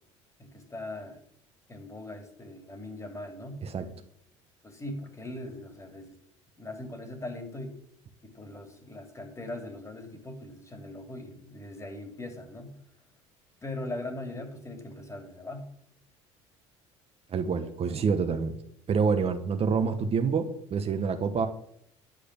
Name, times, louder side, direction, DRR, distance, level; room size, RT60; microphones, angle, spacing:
voice 1, 0.4-1.2 1.7-3.6 4.6-6.2 6.6-7.8 8.2-12.8 13.6-15.7, left 1 dB, 20° left, 6 dB, 2.8 m, -40 dB
voice 2, 17.3-18.6 18.9-21.5, right 5 dB, 40° right, 7 dB, 1.2 m, -27 dB
10.5 x 4.9 x 8.2 m, 0.68 s
hypercardioid pair, 75°, 15 cm